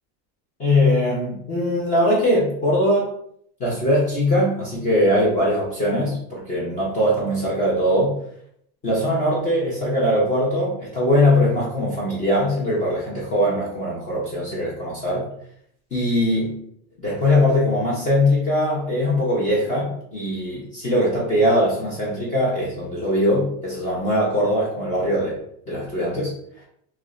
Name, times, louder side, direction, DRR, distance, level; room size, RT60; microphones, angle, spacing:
voice 1, 0.6-3.1 3.6-8.2 8.8-15.2 15.9-16.5 17.0-25.4 25.7-26.3, left 1 dB, 20° left, -6 dB, 0.4 m, -21 dB
2.8 x 2.1 x 2.3 m, 0.68 s
supercardioid pair, 160°, 41 cm